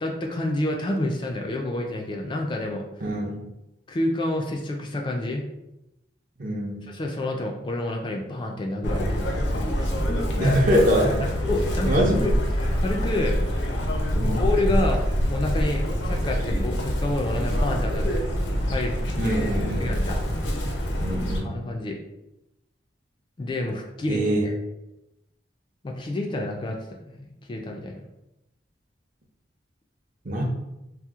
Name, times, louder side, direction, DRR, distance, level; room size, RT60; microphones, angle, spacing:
voice 1, 0.0-2.8 3.9-5.4 6.9-9.2 10.1-10.5 11.2-11.9 12.2-12.3 12.7-13.4 14.2-15.0 15.3-20.2 21.4-22.0 23.4-24.5 25.8-26.8 27.1-28.0, left 1 dB, 25° left, 2 dB, 0.3 m, -29 dB
voice 2, 3.0-3.4 6.4-6.9 10.4-11.3 11.8-12.4 14.1-14.5 19.2-20.0 21.0-21.6 24.1-24.5 30.2-30.4, equal, 50° right, 0 dB, 0.6 m, -24 dB
Chirp tweet, 8.8-21.4, equal, 80° left, 0.6 m, -25 dB
2.8 x 2.0 x 3.5 m, 0.91 s
head